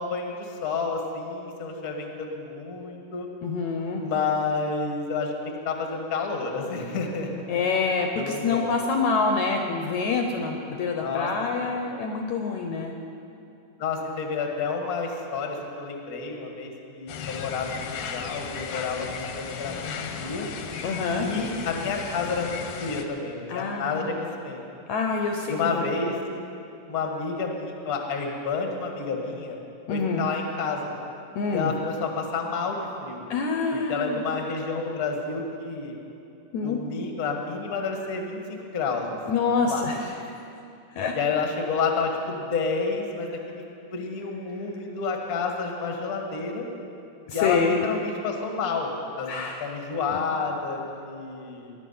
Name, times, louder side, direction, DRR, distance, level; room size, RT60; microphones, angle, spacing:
voice 1, 0.0-3.3 4.0-7.4 8.1-8.8 11.0-11.3 11.6-11.8 13.8-20.5 21.2-24.6 25.5-26.2 26.9-29.6 29.9-30.9 31.5-33.2 33.7-35.9 36.6-39.2 39.7-39.9 41.1-43.6 43.9-46.7 47.3-48.9 49.2-51.7, left 4 dB, 40° left, 2 dB, 1.3 m, -30 dB
voice 2, 3.4-4.0 7.5-12.9 20.8-21.3 23.5-24.2 24.9-25.9 29.9-30.3 31.4-31.7 33.3-34.2 36.5-36.8 39.3-40.4 40.9-41.1 47.3-47.8 49.3-49.7 50.1-50.2, left 4 dB, 70° left, 3 dB, 1.9 m, -26 dB
sound 1, 17.1-23.0, left 6 dB, 85° left, 2.8 m, -36 dB
19.5 x 10.5 x 5.6 m, 2.7 s
omnidirectional pair, 3.9 m